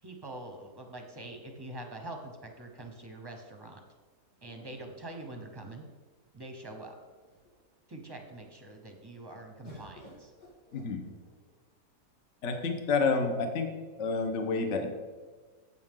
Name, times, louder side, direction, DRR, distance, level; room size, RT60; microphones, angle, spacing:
voice 1, 0.0-3.8 4.4-5.8 6.3-7.0 7.9-10.3, right 2 dB, 15° right, 3 dB, 0.9 m, -44 dB
sound 1, 1.3-2.4 4.4-5.9 6.7-6.8 7.1-7.7 9.6-11.5 12.4-13.1, left 1 dB, 75° left, 3.7 m, -56 dB
voice 2, 10.7-11.0 12.4-13.7 14.0-14.9, left 4 dB, 50° left, 5 dB, 1.1 m, -29 dB
10.5 x 8.0 x 3.8 m, 1.4 s
omnidirectional pair, 1.8 m